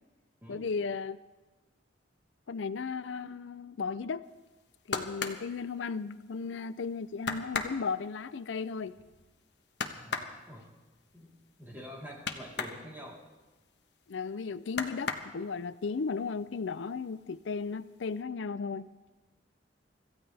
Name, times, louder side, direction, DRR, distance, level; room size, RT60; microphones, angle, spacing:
voice 1, 0.5-1.2 2.5-4.2 4.9-8.9 14.1-18.9, left 5 dB, 90° left, 15 dB, 0.5 m, -35 dB
sound 1, 4.5-6.5 6.8-6.9 7.2-12.8 13.2-14.3 14.7-15.8 16.2-16.8 17.1-17.8 18.1-18.2, left 5 dB, 65° left, 1.2 m, -37 dB
voice 2, 10.0-10.7 11.1-11.3 11.6-13.2, equal, 10° right, -4 dB, 3.7 m, -46 dB
25.5 x 15.0 x 3.5 m, 1.2 s
head